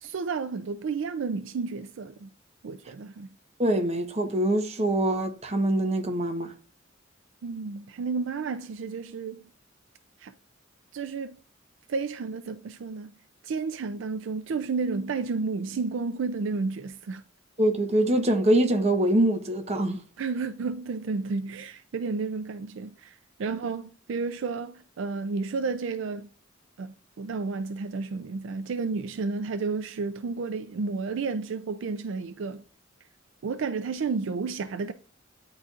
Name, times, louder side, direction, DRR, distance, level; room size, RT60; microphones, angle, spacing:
voice 1, 0.0-2.3 2.6-3.3 7.4-9.5 10.2-10.3 10.9-11.4 11.9-13.2 13.4-17.2 20.2-26.3 26.8-32.6 33.4-34.9, right 4 dB, 70° right, 0.4 m, -31 dB
voice 2, 3.6-6.5 17.6-20.0, right 1 dB, 35° right, 1.0 m, -24 dB
9.6 x 4.0 x 2.4 m
head